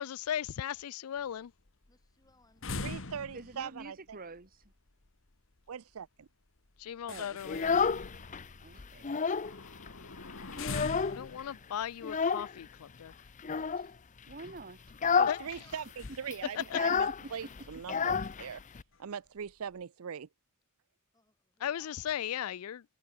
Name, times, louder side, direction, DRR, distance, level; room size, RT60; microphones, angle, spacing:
voice 1, 0.0-1.5 6.8-7.7 11.1-13.1 15.3-15.6 16.5-16.8 21.6-22.8, left 9 dB, 85° left, 0.4 m, -37 dB
sound 1, 1.2-13.8 14.3-14.4 14.6-14.9 15.9-16.5 16.7-16.8 17.2-17.3 17.9-18.0 18.2-18.6 18.9-19.7, left 3 dB, 65° left, 1.9 m, -44 dB
voice 2, 1.9-2.6 15.3-15.7 21.1-22.0, left 2 dB, 15° left, 6.8 m, -65 dB
voice 3, 2.8-4.2 5.7-6.1 15.2-18.6 19.0-20.3, right 7 dB, 75° right, 0.5 m, -41 dB
voice 4, 3.3-4.6 7.1-7.7 8.6-9.1 14.3-14.8 16.6-17.3, right 3 dB, 40° right, 1.4 m, -47 dB
Child speech kid speaking, 7.4-8.4 8.8-9.6 9.9-10.0 10.3-11.4 12.0-12.5 13.4-13.9 14.3-14.5 14.9-15.4 15.7-15.8 16.0-18.8, left 6 dB, 35° left, 0.6 m, -30 dB
head